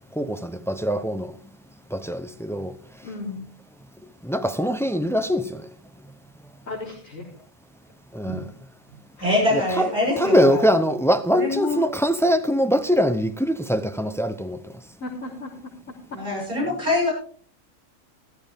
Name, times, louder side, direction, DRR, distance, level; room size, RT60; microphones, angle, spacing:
voice 1, 0.1-1.3 1.9-2.7 4.2-5.7 8.1-8.5 9.5-14.6, equal, 5° left, 0.3 m, -23 dB
voice 2, 3.0-3.4 6.7-7.3 9.2-10.0 15.0-15.5, left 3 dB, 70° left, 4.0 m, -35 dB
voice 3, 9.2-10.6 11.4-11.8 16.1-17.1, left 2 dB, 35° right, 7.7 m, -24 dB
14.0 x 14.0 x 3.5 m
omnidirectional pair, 1.4 m